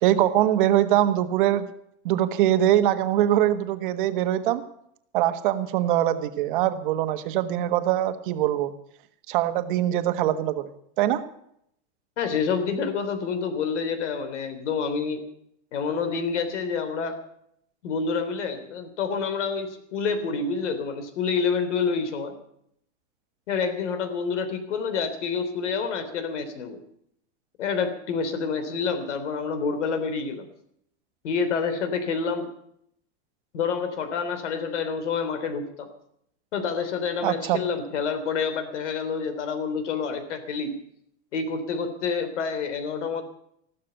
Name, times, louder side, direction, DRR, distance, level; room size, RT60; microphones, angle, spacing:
voice 1, 0.0-1.7 2.0-4.6 5.1-8.7 9.3-10.7 11.0-11.2 37.2-37.6, right 12 dB, 45° right, 10 dB, 1.4 m, -23 dB
voice 2, 12.2-15.3 15.7-17.2 17.8-22.3 23.5-26.8 27.6-30.5 31.2-32.5 33.5-35.9 36.5-40.8 41.3-43.2, left 5 dB, 85° left, 9 dB, 3.5 m, -28 dB
14.5 x 12.5 x 6.9 m, 0.71 s
supercardioid pair, 175°, 35 cm